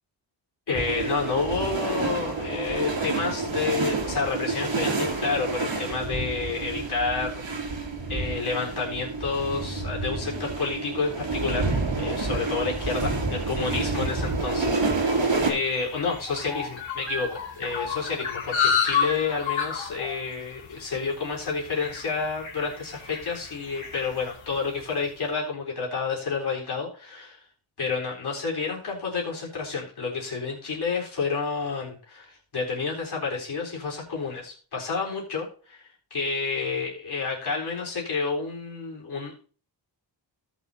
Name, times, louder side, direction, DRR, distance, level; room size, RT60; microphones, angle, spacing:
voice 1, 0.7-7.4 7.7-7.8 8.1-11.6 11.9-27.4 27.8-35.8 36.1-39.4, left 4 dB, 60° left, -3 dB, 4.0 m, -30 dB
sound 1, 0.7-15.5, right 3 dB, 75° right, 2.5 m, -29 dB
sound 2, 14.3-24.9, left 6 dB, 90° left, 2.6 m, -31 dB
17.5 x 6.3 x 2.7 m, 0.40 s
wide cardioid pair, 170°, 45 cm